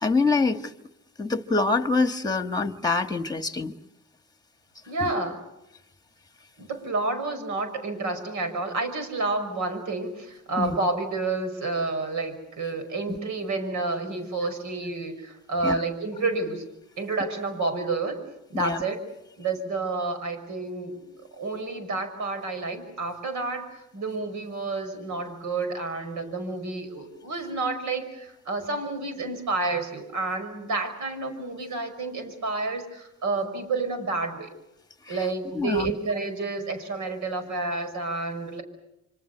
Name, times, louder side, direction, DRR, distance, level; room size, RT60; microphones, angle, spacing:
voice 1, 0.0-0.7 1.2-3.7 5.0-5.1 10.6-10.8 13.1-13.2 15.6-15.8 18.5-18.8 35.5-35.9, left 3 dB, 15° left, 9 dB, 1.5 m, -25 dB
voice 2, 4.9-5.4 6.6-16.7 17.0-18.2 18.5-19.0 19.4-21.0 21.3-34.5 35.1-38.6, right 3 dB, 75° right, 8 dB, 5.8 m, -30 dB
27.0 x 25.0 x 6.8 m, 0.87 s
cardioid pair, 90°, 30 cm